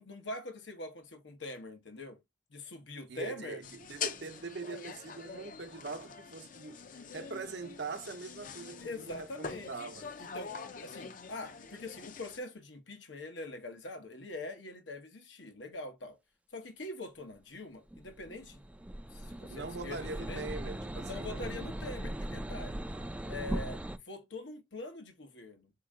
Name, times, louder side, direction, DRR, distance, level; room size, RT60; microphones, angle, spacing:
voice 1, 0.0-2.2 2.5-3.6 8.8-10.5 10.8-16.2 16.5-18.6 19.1-20.5 21.0-22.8 23.3-25.7, left 2 dB, 85° left, 1.1 m, -44 dB
voice 2, 3.1-10.1 19.5-21.5, right 3 dB, 65° right, 0.7 m, -42 dB
sound 1, 3.6-12.4, left 6 dB, 45° left, 0.6 m, -44 dB
sound 2, 17.9-24.0, right 1 dB, 5° right, 0.3 m, -39 dB
4.4 x 2.9 x 3.6 m
head